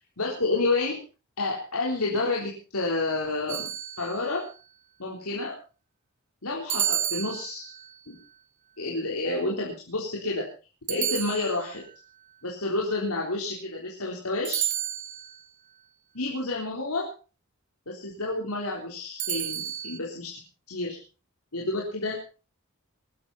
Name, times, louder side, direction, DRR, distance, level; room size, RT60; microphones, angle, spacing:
voice 1, 0.2-1.0 1.4-3.7 4.0-4.5 5.0-5.5 6.4-7.7 8.1-8.2 8.8-10.5 10.9-11.8 12.4-14.7 16.1-17.1 17.9-20.4 20.7-21.0 21.5-22.2, left 2 dB, 85° left, -3 dB, 3.8 m, -29 dB
sound 1, 3.5-4.4 6.7-7.9 10.9-11.9 14.4-15.4 19.2-20.0, right 11 dB, 35° right, 0.9 m, -31 dB
22.0 x 12.5 x 4.2 m, 0.34 s
head